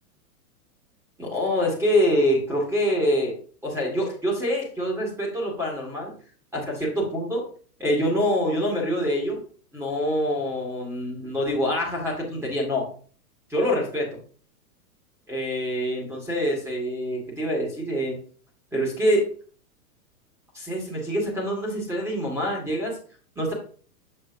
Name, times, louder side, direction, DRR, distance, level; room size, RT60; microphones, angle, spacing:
voice 1, 1.2-3.3 3.6-6.1 6.5-7.4 7.8-9.4 9.7-12.9 13.5-14.1 15.3-18.2 18.7-19.2 20.5-23.0 23.3-23.5, equal, 5° right, -2 dB, 1.8 m, -25 dB
6.5 x 6.0 x 2.6 m, 0.44 s
hypercardioid pair, 150°, 45 cm